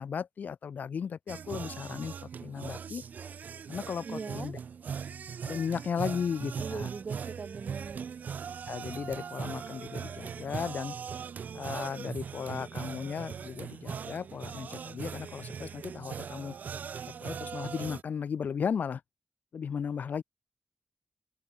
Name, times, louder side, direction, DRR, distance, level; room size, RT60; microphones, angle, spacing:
voice 1, 0.0-3.0 3.7-4.6 5.4-6.9 8.7-11.0 11.5-16.5 17.2-19.0 19.5-20.2, left 7 dB, 75° left, 0.6 m, -35 dB
sound 1, 1.3-18.0, right 7 dB, 75° right, 0.4 m, -40 dB
voice 2, 4.0-4.5 6.6-8.1, right 5 dB, 55° right, 0.8 m, -40 dB
wide cardioid pair, 95°, 3 cm